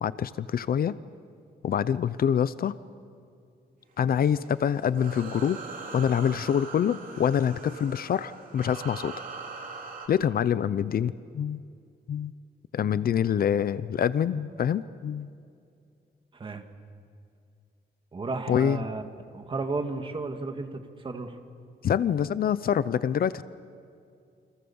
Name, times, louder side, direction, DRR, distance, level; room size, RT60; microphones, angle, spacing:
voice 1, 0.0-1.0 1.6-2.8 4.0-5.6 5.9-9.1 10.1-11.6 12.1-12.3 12.7-15.3 18.5-18.8 21.8-23.4, left 8 dB, 55° left, 16 dB, 0.7 m, -26 dB
sound 1, 4.1-10.1, right 4 dB, 50° right, 3.7 m, -41 dB
voice 2, 16.3-16.6 18.1-19.0 19.3-21.4, right 3 dB, 30° right, 6 dB, 1.9 m, -33 dB
29.0 x 26.5 x 7.1 m, 2.4 s
wide cardioid pair, 175°, 18 cm